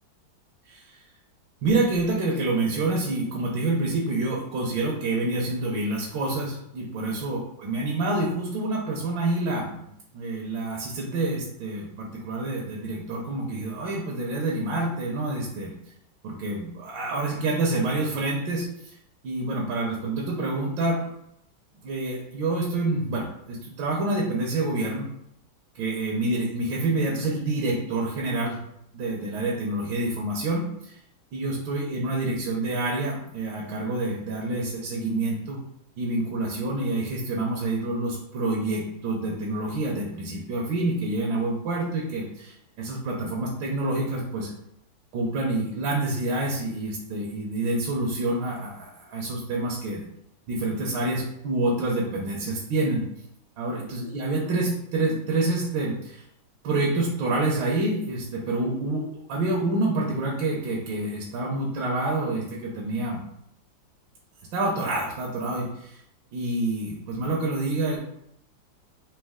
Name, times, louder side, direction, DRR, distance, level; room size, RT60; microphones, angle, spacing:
voice 1, 0.7-1.0 1.6-15.7 16.2-18.9 19.2-21.0 21.8-25.1 25.8-28.6 28.9-31.0 31.3-35.6 36.0-44.5 45.1-50.0 50.5-53.0 53.6-56.2 56.6-63.2 64.5-66.0 66.3-68.0, right 2 dB, 75° right, -2 dB, 1.4 m, -27 dB
4.1 x 2.9 x 3.5 m, 0.77 s
omnidirectional pair, 2.2 m